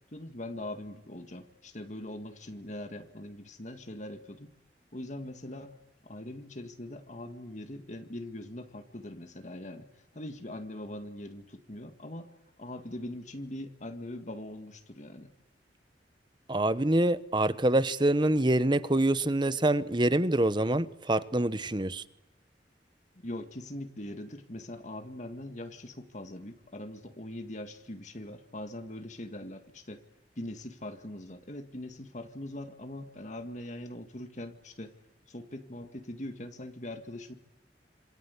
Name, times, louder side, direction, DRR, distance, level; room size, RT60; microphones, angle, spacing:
voice 1, 0.1-4.5 4.9-5.8 6.0-9.9 10.1-12.3 12.6-15.3 23.2-30.0 30.4-35.0 35.3-37.3, left 1 dB, 40° left, 2.0 m, -41 dB
voice 2, 16.5-22.0, right 1 dB, 25° right, 1.0 m, -26 dB
27.0 x 26.5 x 8.3 m
head